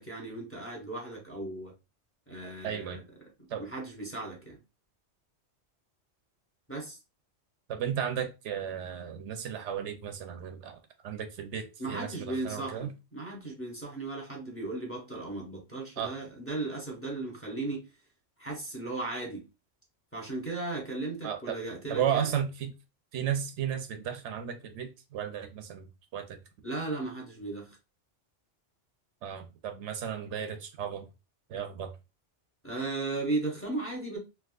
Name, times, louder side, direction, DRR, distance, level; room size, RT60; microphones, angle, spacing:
voice 1, 0.0-1.7 2.3-3.0 3.6-4.6 6.7-7.0 11.8-17.9 18.4-19.4 20.1-22.3 26.6-27.8 32.6-34.2, right 2 dB, 15° left, 0.9 m, -36 dB
voice 2, 2.6-3.0 3.5-3.6 7.7-10.8 11.0-12.9 16.0-16.1 21.2-21.6 21.9-22.7 23.1-26.4 29.2-31.0 31.5-31.9, right 9 dB, 75° right, 0.9 m, -34 dB
3.5 x 2.7 x 2.3 m
omnidirectional pair, 1.2 m